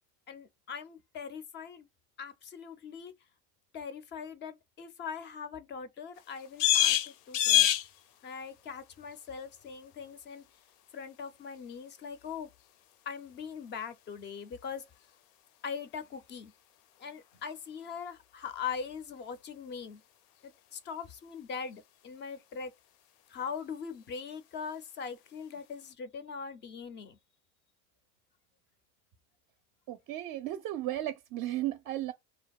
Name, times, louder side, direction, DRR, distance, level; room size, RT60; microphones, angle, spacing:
voice 1, 0.3-1.9 2.2-3.1 3.7-7.7 8.2-10.5 10.9-12.5 13.1-14.9 15.6-16.5 17.0-20.0 20.4-22.7 23.3-27.2, left 6 dB, 25° left, 0.4 m, -41 dB
sound 1, 6.1-25.9, left 12 dB, 90° left, 0.6 m, -36 dB
voice 2, 29.9-32.1, right 14 dB, 50° right, 0.4 m, -35 dB
2.6 x 2.1 x 2.3 m
supercardioid pair, 125°, 45 cm